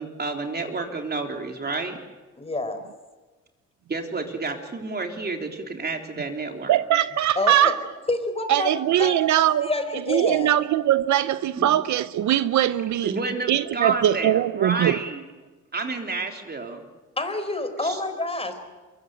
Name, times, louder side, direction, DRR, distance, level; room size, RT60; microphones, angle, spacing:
voice 1, 0.0-2.0 3.9-6.8 11.6-11.7 13.0-15.2 15.7-16.8 17.8-18.0, right 3 dB, 35° right, 3.6 m, -30 dB
voice 2, 2.4-2.8 7.4-7.8 8.1-9.1 9.6-10.5 17.2-18.6, left 2 dB, 20° left, 4.3 m, -28 dB
voice 3, 6.7-7.8 8.5-13.1 13.5-15.0, right 12 dB, 70° right, 0.8 m, -21 dB
23.5 x 22.0 x 9.0 m
cardioid pair, 90°, 30 cm